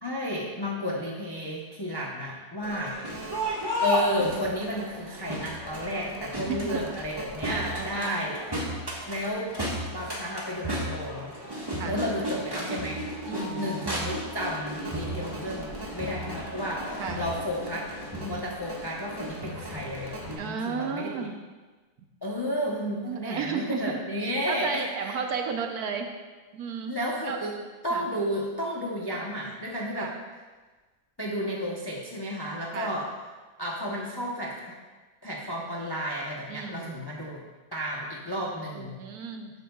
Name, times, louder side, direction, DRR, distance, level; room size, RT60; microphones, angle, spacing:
voice 1, 0.0-3.2 3.8-8.4 9.1-9.5 9.9-11.3 11.8-17.9 18.2-21.3 22.2-25.2 26.9-27.5 27.8-30.1 31.2-33.1 33.6-34.8 35.2-37.4 37.7-39.0, equal, 20° left, -3 dB, 0.8 m, -32 dB
Crowd, 2.6-20.3, equal, 15° right, 1.5 m, -34 dB
voice 2, 6.5-6.8 7.5-8.2 11.8-12.0 13.3-13.7 17.0-17.2 20.4-21.4 23.0-24.0 24.2-26.1 26.5-27.0 27.2-27.4 27.9-28.0 29.9-30.1 32.7-33.0 36.5-36.9 38.7-39.5, right 6 dB, 80° right, 4 dB, 1.3 m, -33 dB
12.5 x 8.3 x 2.3 m, 1.3 s
omnidirectional pair, 1.6 m